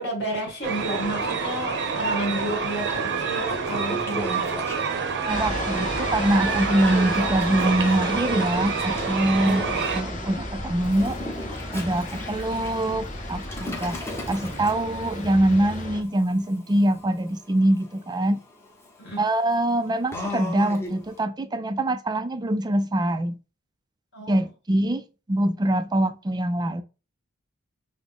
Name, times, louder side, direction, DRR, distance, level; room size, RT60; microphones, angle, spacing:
voice 1, 0.0-4.6 9.4-9.6 19.0-19.2 24.1-24.5, equal, 55° left, 2.1 m, -31 dB
sound 1, 0.6-10.0, right 5 dB, 55° right, 0.7 m, -27 dB
Toilet flush, 2.7-2.8 3.2-5.2 6.4-10.0 10.8-21.2, left 1 dB, 10° left, 0.8 m, -38 dB
voice 2, 5.2-11.2 11.7-18.4 19.2-23.4 24.3-26.8, right 1 dB, 20° right, 0.4 m, -24 dB
sound 2, 5.3-16.0, left 1 dB, 35° left, 1.1 m, -33 dB
5.9 x 2.1 x 3.5 m
head